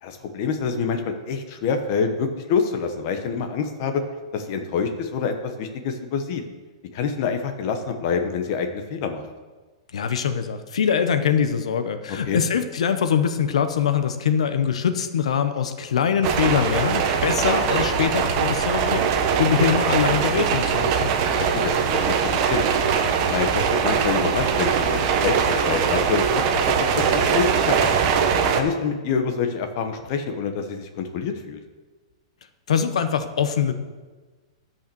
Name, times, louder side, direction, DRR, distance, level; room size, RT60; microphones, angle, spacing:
voice 1, 0.0-4.0 4.3-6.4 6.9-9.2 12.2-12.4 21.4-22.6 23.2-27.9 28.5-31.6, left 6 dB, 30° left, 6 dB, 1.1 m, -26 dB
voice 2, 9.9-19.1 19.3-21.1 32.7-33.7, left 7 dB, 80° left, 10 dB, 1.0 m, -23 dB
sound 1, 16.2-28.6, right 6 dB, 25° right, 0.8 m, -21 dB
12.0 x 5.6 x 7.0 m, 1.3 s
hypercardioid pair, 175°, 3 cm